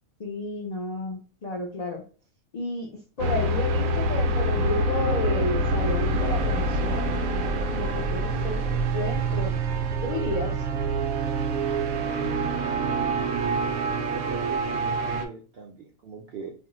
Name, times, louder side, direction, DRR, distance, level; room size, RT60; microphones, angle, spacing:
voice 1, 0.2-2.0 2.5-2.9 3.2-7.2 7.7-9.5 10.0-10.5, left 2 dB, 55° left, -2 dB, 0.4 m, -32 dB
sound 1, 3.2-15.3, right 2 dB, 75° right, 1.0 m, -26 dB
voice 2, 12.1-13.3 14.0-16.5, right 5 dB, 60° right, 0 dB, 0.7 m, -40 dB
2.6 x 2.0 x 3.6 m, 0.37 s
omnidirectional pair, 1.5 m